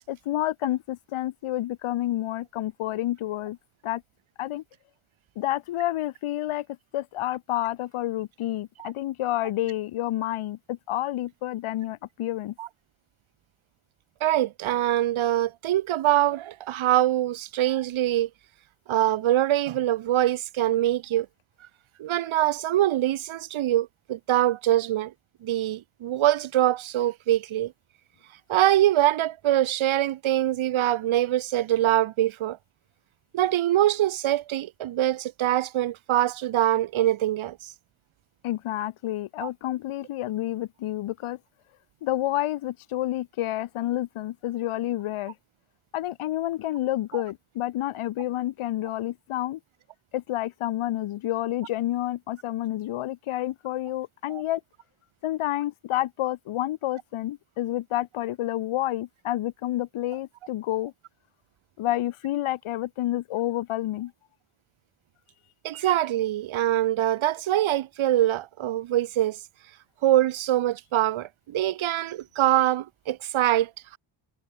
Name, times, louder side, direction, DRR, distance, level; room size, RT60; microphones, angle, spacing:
voice 1, 0.1-3.6 3.8-4.0 4.4-4.6 5.3-6.7 6.9-12.5 38.4-41.4 42.0-45.3 45.9-49.6 50.1-54.6 55.2-60.9 61.8-64.1, left 14 dB, 80° left, 3.1 m, -29 dB
voice 2, 14.2-18.3 18.9-21.3 22.0-25.1 25.4-27.7 28.5-32.6 33.3-37.6 39.4-39.5 65.6-69.4 70.0-74.0, right 13 dB, 70° right, 2.1 m, -24 dB
cardioid pair, 95°, 49 cm